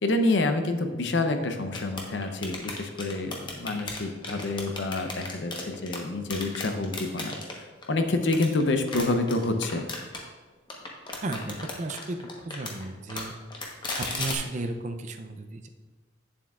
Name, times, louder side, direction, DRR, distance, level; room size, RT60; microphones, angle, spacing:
voice 1, 0.0-7.3 7.9-9.8, left 2 dB, 65° left, 7 dB, 0.6 m, -27 dB
sound 1, 1.7-6.0 6.3-7.5 7.8-10.2 10.7-12.8 13.1-14.4, left 3 dB, 25° left, 0.9 m, -35 dB
voice 2, 11.2-12.2 12.4-13.3 14.1-15.7, right 2 dB, 40° right, 7 dB, 0.5 m, -34 dB
8.7 x 7.2 x 2.4 m, 1.3 s
head